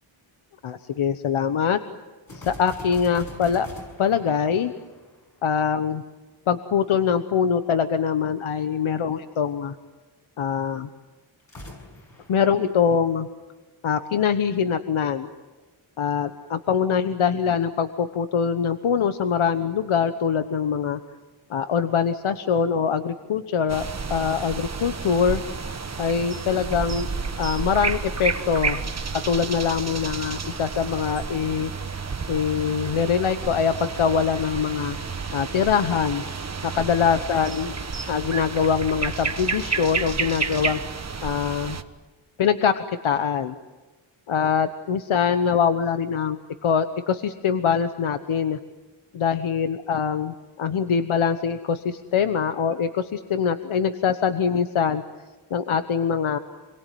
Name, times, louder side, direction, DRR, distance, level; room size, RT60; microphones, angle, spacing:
voice 1, 0.6-1.8 2.3-3.7 4.0-4.7 5.4-6.0 6.5-9.7 10.4-10.9 12.3-13.3 13.8-15.3 16.0-21.0 21.5-23.8 24.1-25.4 26.0-27.1 27.4-28.8 29.1-31.7 32.3-35.0 35.3-36.2 36.6-37.7 38.1-40.8 41.2-41.8 42.4-43.6 44.3-48.6 49.1-55.0 55.5-56.4, left 7 dB, 80° left, 9 dB, 1.2 m, -23 dB
sound 1, 2.3-5.7 11.4-13.5, left 1 dB, 45° left, 7.0 m, -43 dB
sound 2, 23.7-41.8, right 5 dB, 35° right, 1.3 m, -31 dB
27.5 x 22.0 x 9.3 m, 1.2 s
wide cardioid pair, 150°, 48 cm